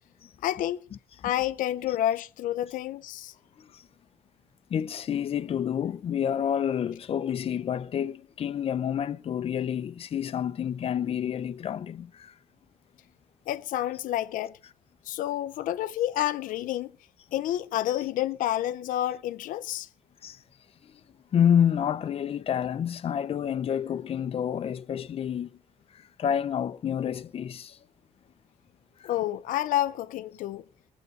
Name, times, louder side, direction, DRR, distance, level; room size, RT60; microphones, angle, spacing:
voice 1, 0.4-0.8 1.2-3.3 13.5-14.6 15.1-16.9 17.3-19.9 29.0-30.6, left 13 dB, 85° left, 0.6 m, -29 dB
voice 2, 4.7-12.3 20.2-20.4 20.8-21.0 21.3-25.6 25.9-27.8 29.0-29.1, left 9 dB, 45° left, 0.8 m, -28 dB
22.0 x 8.3 x 5.4 m
cardioid pair, 135°, 13 cm